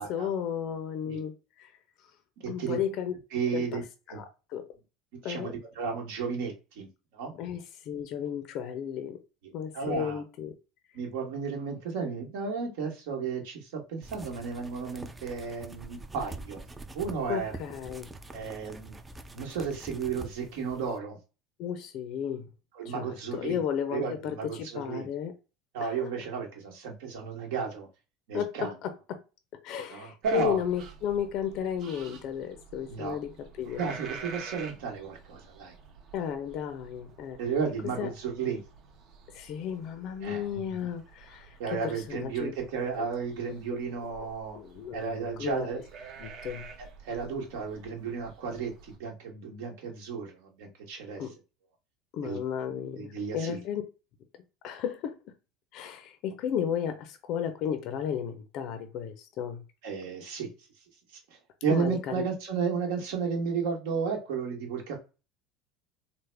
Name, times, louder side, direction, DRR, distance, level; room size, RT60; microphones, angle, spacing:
voice 1, 0.0-1.7 2.5-3.1 3.5-3.8 4.1-4.7 5.2-5.5 7.3-9.2 9.5-10.5 17.3-18.1 21.6-22.5 22.8-25.3 25.8-26.1 28.3-29.2 29.6-33.9 36.1-37.4 38.0-38.1 39.3-42.5 42.9-43.1 44.5-45.8 46.2-46.7 51.2-51.3 52.1-53.8 54.6-55.2 55.7-59.6 61.7-62.2, left 8 dB, 55° left, 0.4 m, -34 dB
voice 2, 2.4-2.8 3.3-3.8 4.1-4.2 5.1-7.3 9.7-10.2 10.9-16.6 16.9-17.5 18.3-19.0 19.3-21.2 22.8-23.6 23.9-25.1 25.7-27.9 28.3-28.7 29.9-30.6 32.9-33.2 33.8-35.7 37.4-38.6 40.2-40.6 41.6-44.6 44.9-45.8 46.8-51.2 52.2-52.4 52.9-53.6 59.8-60.5 61.3-65.0, right 5 dB, 80° right, 1.1 m, -33 dB
sound 1, 14.0-21.0, right 2 dB, 15° right, 0.3 m, -45 dB
sound 2, 30.2-49.0, right 5 dB, 50° right, 0.6 m, -49 dB
3.4 x 2.0 x 3.2 m
supercardioid pair, 120°, 0 cm